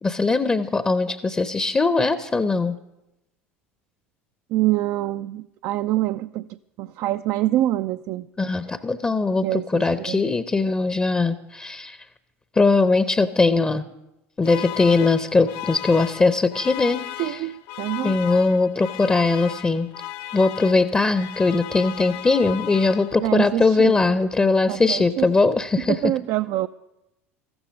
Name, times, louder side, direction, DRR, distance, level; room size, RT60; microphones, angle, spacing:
voice 1, 0.0-2.8 8.4-12.0 12.5-13.8 14.4-17.4 18.0-19.9 20.3-26.0, left 3 dB, 15° left, 13 dB, 0.7 m, -20 dB
voice 2, 4.5-6.5 6.8-8.3 9.4-10.2 17.2-17.5 17.8-18.2 23.2-23.9 24.7-25.3 25.8-26.7, right 14 dB, 50° right, 10 dB, 0.4 m, -25 dB
sound 1, 14.4-23.5, left 14 dB, 55° left, 0.7 m, -36 dB
14.5 x 13.0 x 5.2 m, 0.91 s
figure-of-eight pair, 70°, 7 cm